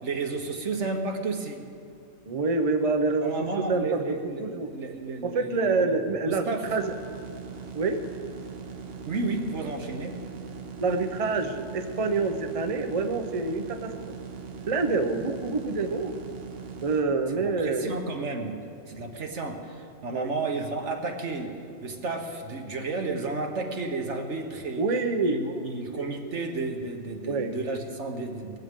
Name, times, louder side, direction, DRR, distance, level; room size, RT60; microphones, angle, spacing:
voice 1, 0.0-1.6 3.2-5.9 6.2-6.7 9.0-10.2 17.4-18.6 18.9-24.8 25.2-28.6, right 3 dB, 80° right, 3 dB, 1.6 m, -32 dB
voice 2, 2.3-4.0 4.4-4.7 5.2-6.8 7.7-8.0 10.8-14.1 14.7-16.1 16.8-18.0 20.1-20.3 24.8-26.3 27.2-27.5, right 3 dB, 35° right, 6 dB, 0.8 m, -27 dB
sound 1, 6.6-17.0, right 5 dB, 60° right, 1.1 m, -40 dB
20.0 x 15.5 x 3.7 m, 2.4 s
omnidirectional pair, 1.2 m